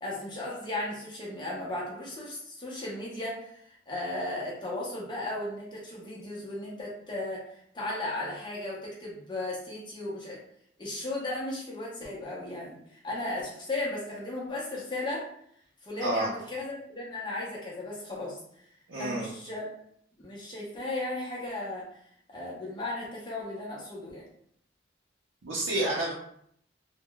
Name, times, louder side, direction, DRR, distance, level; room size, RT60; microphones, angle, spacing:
voice 1, 0.0-10.4 10.8-15.3 15.8-18.4 19.0-19.7 20.2-21.9 22.3-24.2, left 2 dB, 25° left, -5 dB, 0.8 m, -35 dB
voice 2, 18.9-19.3 25.4-26.1, right 1 dB, 90° right, -6 dB, 0.6 m, -29 dB
3.6 x 2.2 x 2.3 m, 0.68 s
head